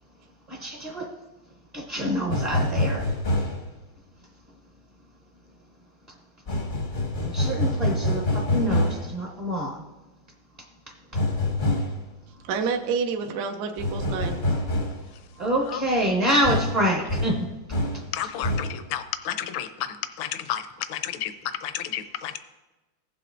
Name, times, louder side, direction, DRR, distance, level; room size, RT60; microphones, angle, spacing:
voice 1, 0.5-1.1 1.7-3.0 7.2-9.8 15.4-17.5, equal, 30° right, -1 dB, 0.7 m, -26 dB
sound 1, 2.3-3.7 6.5-9.1 11.1-12.0 13.8-15.1 16.4-18.1 18.4-18.8, left 1 dB, 45° left, 0.6 m, -26 dB
voice 2, 12.5-14.4, right 5 dB, 65° right, 5 dB, 1.1 m, -28 dB
voice 3, 18.1-22.4, left 10 dB, 80° left, 9 dB, 1.4 m, -32 dB
15.5 x 7.7 x 2.5 m, 1.1 s
omnidirectional pair, 2.2 m